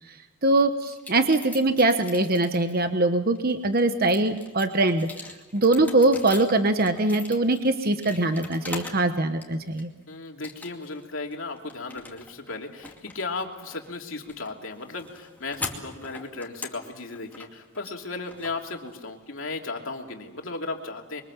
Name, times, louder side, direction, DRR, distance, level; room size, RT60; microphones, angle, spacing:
voice 1, 0.4-5.1 5.5-9.9, right 2 dB, 45° right, 8 dB, 1.1 m, -22 dB
sound 1, 0.8-2.8 3.4-9.1 9.4-10.0 10.4-11.0 11.3-19.2, left 3 dB, 10° left, 2.5 m, -42 dB
voice 2, 10.1-21.2, left 3 dB, 65° left, 2 dB, 3.0 m, -35 dB
27.5 x 23.5 x 7.3 m, 1.1 s
head